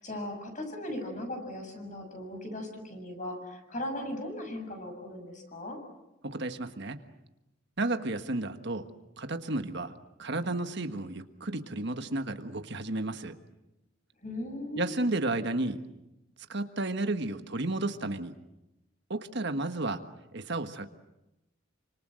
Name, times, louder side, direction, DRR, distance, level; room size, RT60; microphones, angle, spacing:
voice 1, 0.0-5.8 14.2-15.0, left 1 dB, 40° left, 5 dB, 6.9 m, -38 dB
voice 2, 6.2-7.0 7.8-8.9 9.2-13.3 14.8-15.8 16.5-18.3 19.1-20.0 20.3-20.9, right 2 dB, 55° right, 8 dB, 1.5 m, -32 dB
29.0 x 26.0 x 7.7 m, 0.92 s
head